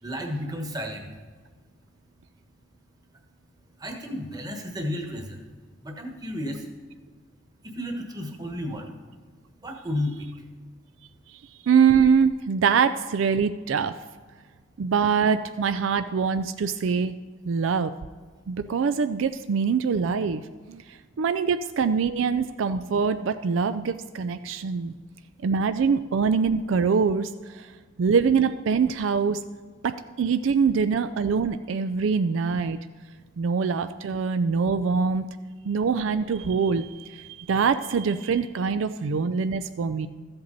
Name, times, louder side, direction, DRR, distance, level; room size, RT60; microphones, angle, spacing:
voice 1, 0.0-1.1 3.8-5.5 5.8-6.7 7.6-8.9 9.6-10.3, left 1 dB, 20° right, 3 dB, 1.3 m, -32 dB
voice 2, 11.6-14.0 14.8-17.2 17.4-17.9 18.5-20.4 20.7-20.8 21.2-24.9 25.4-27.7 28.0-29.4 29.8-32.8 33.4-35.3 35.6-40.1, right 6 dB, 75° right, 11 dB, 0.4 m, -24 dB
13.5 x 7.9 x 4.0 m, 1.5 s
head